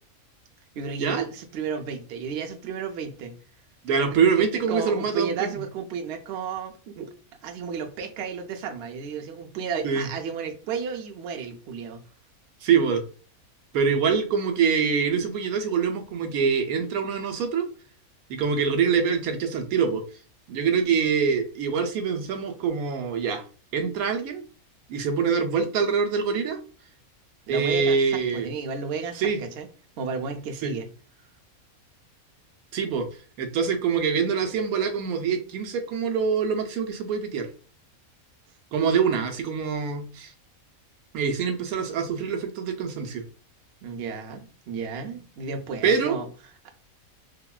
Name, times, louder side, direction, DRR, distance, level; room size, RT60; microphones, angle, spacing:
voice 1, 0.7-3.3 4.1-4.2 4.7-7.1 7.4-12.0 27.5-29.7 30.0-30.9 43.8-46.7, right 5 dB, 60° right, 4 dB, 0.7 m, -33 dB
voice 2, 3.8-5.6 9.8-10.1 12.6-13.0 13.7-17.7 18.3-20.0 20.5-23.4 23.7-24.4 24.9-26.6 27.5-28.5 29.1-29.4 30.6-30.7 32.7-33.1 33.4-37.5 38.7-40.3 41.1-43.2 45.8-46.2, right 6 dB, 85° right, 6 dB, 1.1 m, -24 dB
3.7 x 2.1 x 2.3 m, 0.38 s
omnidirectional pair, 1.5 m